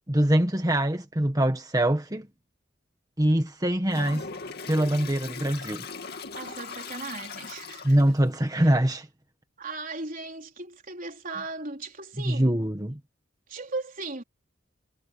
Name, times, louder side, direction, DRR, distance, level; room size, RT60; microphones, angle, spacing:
voice 1, 0.1-2.3 3.2-4.3 4.7-5.8 7.8-9.1 12.2-13.0, right 1 dB, 20° right, 1.6 m, -23 dB
Toilet flush, 3.9-8.2, left 5 dB, 55° left, 2.5 m, -39 dB
voice 2, 6.3-8.0 8.6-8.7 9.6-12.6 13.5-14.2, right 3 dB, 45° right, 4.0 m, -37 dB
head